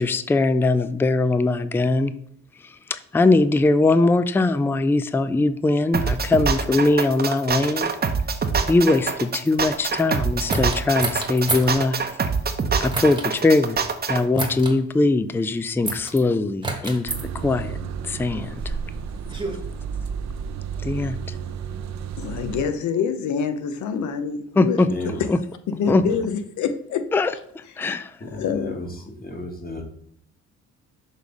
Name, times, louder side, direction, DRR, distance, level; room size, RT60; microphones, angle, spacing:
voice 1, 0.0-2.1 2.6-7.9 8.7-12.0 12.8-13.8 14.1-17.8 18.0-18.7 20.8-21.2 24.6-24.9 25.3-25.4 25.9-26.0 27.1-28.2, left 2 dB, 10° left, 12 dB, 0.4 m, -21 dB
sound 1, 5.9-14.2, right 5 dB, 30° right, 0.8 m, -25 dB
sound 2, 10.5-11.8 12.9-13.3 14.4-14.8 15.9-16.2 16.6-17.2 18.1-19.6, right 2 dB, 15° right, 1.3 m, -29 dB
sound 3, 17.1-22.6, right 7 dB, 65° right, 0.7 m, -32 dB
voice 2, 22.2-24.8 25.7-27.0 28.4-28.8, left 6 dB, 75° left, 9 dB, 0.8 m, -26 dB
voice 3, 24.9-25.2 25.8-25.9 28.2-28.9 29.2-29.8, left 1 dB, 30° left, 2 dB, 1.7 m, -33 dB
6.4 x 3.5 x 5.2 m, 0.65 s
cardioid pair, 90°, 30 cm